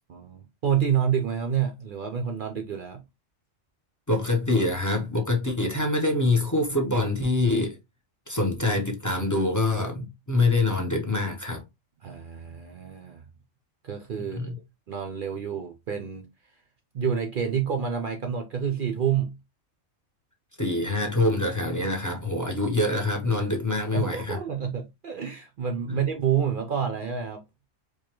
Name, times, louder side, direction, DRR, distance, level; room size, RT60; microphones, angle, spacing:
voice 1, 0.1-3.0 12.0-13.2 13.8-14.5 14.9-16.3 16.9-19.3 23.9-27.4, right 8 dB, 60° right, 0.5 m, -28 dB
voice 2, 4.1-7.8 8.3-11.6 14.3-14.5 20.6-24.4, left 2 dB, 20° left, 0.6 m, -25 dB
4.8 x 2.3 x 2.9 m
omnidirectional pair, 1.3 m